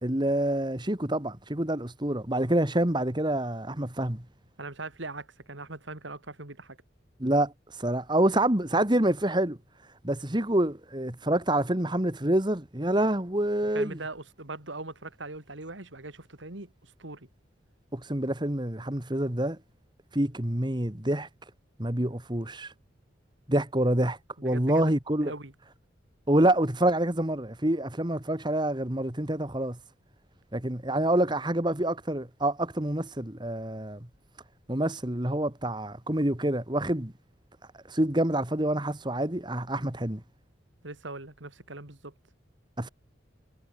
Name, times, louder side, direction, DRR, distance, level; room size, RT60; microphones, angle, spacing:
voice 1, 0.0-4.2 7.2-7.5 7.8-9.6 10.0-14.0 17.9-19.6 20.1-21.3 21.8-22.7 23.5-25.3 26.3-29.8 30.5-34.0 34.7-37.1 37.9-40.2 42.8-42.9, right 1 dB, 25° right, 2.0 m, -27 dB
voice 2, 4.6-6.8 13.7-17.3 24.4-24.9 25.2-25.5 40.8-42.1, right 2 dB, 80° right, 3.0 m, -41 dB
head